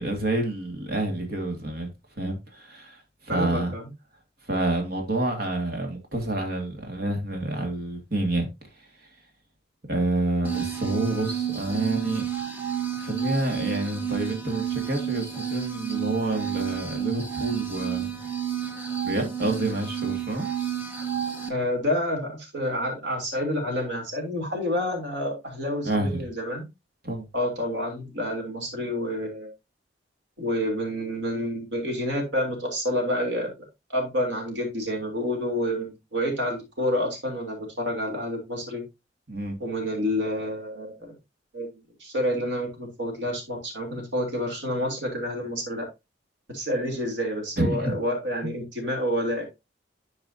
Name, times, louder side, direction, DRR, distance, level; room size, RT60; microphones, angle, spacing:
voice 1, 0.0-1.9 2.2-3.7 4.5-8.5 9.9-12.2 13.0-18.2 19.0-20.5 25.8-26.3 27.0-27.3 39.3-39.6 47.6-47.9 48.4-48.5, right 2 dB, 55° right, 2.1 m, -28 dB
voice 2, 3.3-3.9 21.5-26.7 27.3-29.5 30.4-33.5 33.9-38.8 39.6-41.1 41.5-45.8 46.5-49.4, equal, 85° right, 3.2 m, -28 dB
sound 1, 10.4-21.5, right 9 dB, 10° right, 1.3 m, -31 dB
11.5 x 4.8 x 2.7 m
head